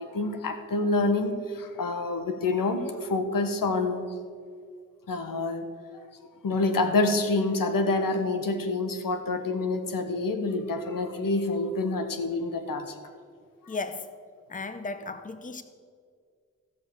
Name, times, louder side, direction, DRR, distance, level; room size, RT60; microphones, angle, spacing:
voice 1, 0.0-4.1 5.1-5.7 5.9-6.0 6.4-12.9, left 3 dB, 70° left, 7 dB, 1.3 m, -27 dB
voice 2, 13.7-14.1 14.5-15.6, left 3 dB, 25° left, 10 dB, 0.9 m, -35 dB
16.0 x 5.6 x 6.7 m, 2.1 s
supercardioid pair, 40°, 35 cm